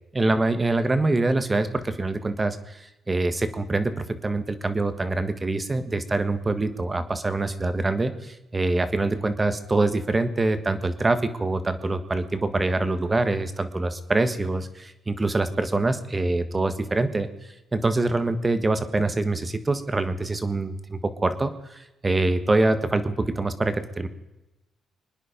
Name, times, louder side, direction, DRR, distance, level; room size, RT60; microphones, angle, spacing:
voice 1, 0.1-17.3 17.7-24.1, right 2 dB, 25° right, 10 dB, 1.4 m, -25 dB
24.5 x 10.0 x 5.2 m, 1.0 s
cardioid pair, 90°, 0 cm